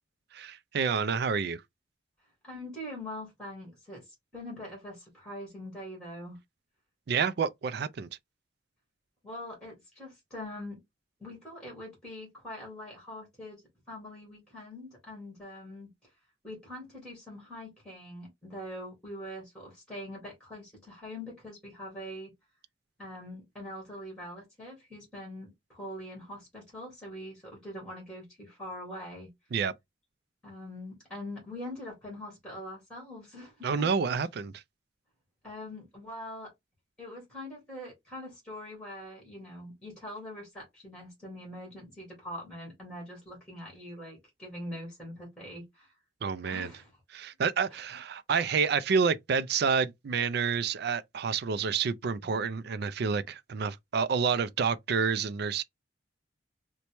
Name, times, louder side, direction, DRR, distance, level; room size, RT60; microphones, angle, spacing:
voice 1, 0.3-1.6 7.1-8.1 29.5-29.7 33.6-34.6 46.2-46.7 47.1-55.6, right 5 dB, 60° right, 0.4 m, -29 dB
voice 2, 2.4-6.4 9.2-10.8 11.2-13.6 13.9-16.1 16.4-22.3 23.0-29.3 30.4-34.2 35.4-36.5 37.0-45.9 46.4-46.9, left 1 dB, 5° left, 1.9 m, -43 dB
4.0 x 2.2 x 3.0 m
head